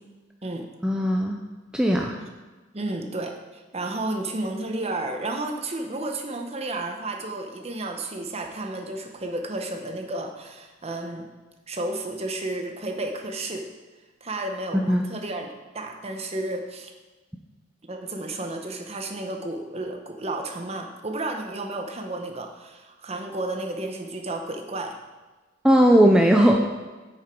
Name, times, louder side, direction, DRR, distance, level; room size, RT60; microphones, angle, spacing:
voice 1, 0.8-1.4 1.7-2.1 14.7-15.1 25.6-26.6, equal, 5° right, 1 dB, 0.4 m, -18 dB
voice 2, 2.7-11.3 11.7-13.7 14.2-16.9 17.8-25.0, right 2 dB, 30° right, 4 dB, 0.9 m, -32 dB
9.1 x 6.6 x 4.5 m, 1.2 s
head